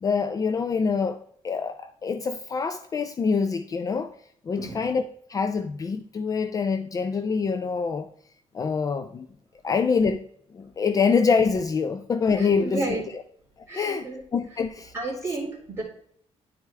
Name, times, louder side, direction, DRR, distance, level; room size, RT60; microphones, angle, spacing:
voice 1, 0.0-1.2 1.4-4.1 4.5-5.0 5.3-8.1 8.5-9.3 9.6-10.2 10.5-13.0 13.7-14.9, left 5 dB, 30° left, 8 dB, 0.4 m, -25 dB
voice 2, 4.6-4.9 12.4-13.1 13.7-14.2 14.9-15.8, right 2 dB, 20° right, -5 dB, 3.0 m, -32 dB
10.5 x 4.8 x 3.3 m, 0.66 s
cardioid pair, 155°, 12 cm